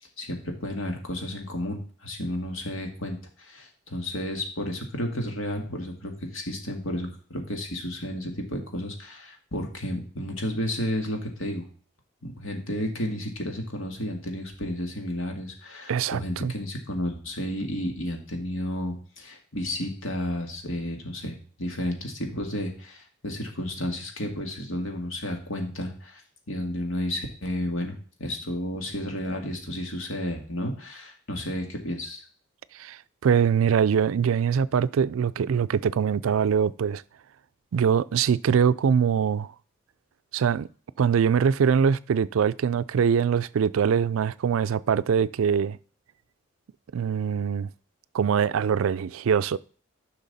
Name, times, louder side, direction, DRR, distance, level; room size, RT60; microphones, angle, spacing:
voice 1, 0.2-11.7 12.2-26.2 26.5-32.2, left 1 dB, 75° left, 2.1 m, -32 dB
voice 2, 15.9-16.5 32.7-37.0 37.7-39.5 40.3-40.7 41.0-45.8 46.9-47.7 48.1-49.6, right 7 dB, 75° right, 0.4 m, -23 dB
10.5 x 5.9 x 4.1 m
head